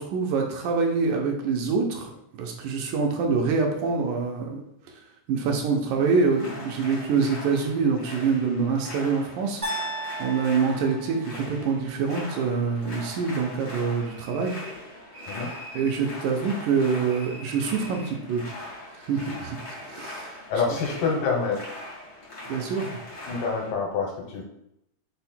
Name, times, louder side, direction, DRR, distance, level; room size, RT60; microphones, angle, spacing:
voice 1, 0.0-4.6 5.3-9.6 10.2-14.5 15.7-18.7 19.0-19.6 19.9-20.4 22.5-23.0, right 5 dB, 90° right, 2 dB, 2.2 m, -25 dB
sound 1, 6.0-23.7, left 1 dB, 55° left, 0.7 m, -41 dB
sound 2, 9.6-11.8, right 1 dB, 55° right, 0.4 m, -35 dB
sound 3, 14.0-14.8 15.1-16.1 17.1-18.1, right 1 dB, 70° right, 2.2 m, -44 dB
voice 2, 20.5-21.6 23.3-24.4, left 4 dB, 90° left, 0 dB, 2.5 m, -26 dB
5.5 x 2.1 x 4.2 m, 0.80 s
omnidirectional pair, 3.5 m